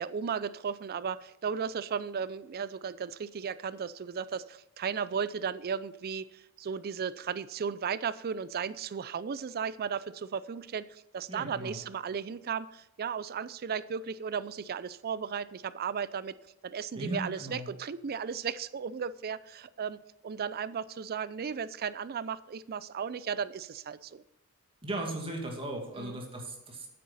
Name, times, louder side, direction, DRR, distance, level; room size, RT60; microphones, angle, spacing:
voice 1, 0.0-16.4 16.6-24.2 26.0-26.2, right 6 dB, 45° right, 17 dB, 0.4 m, -35 dB
voice 2, 11.3-11.8 16.9-17.7 24.8-26.9, right 1 dB, 25° right, 1 dB, 2.3 m, -37 dB
9.3 x 8.6 x 4.1 m, 0.93 s
head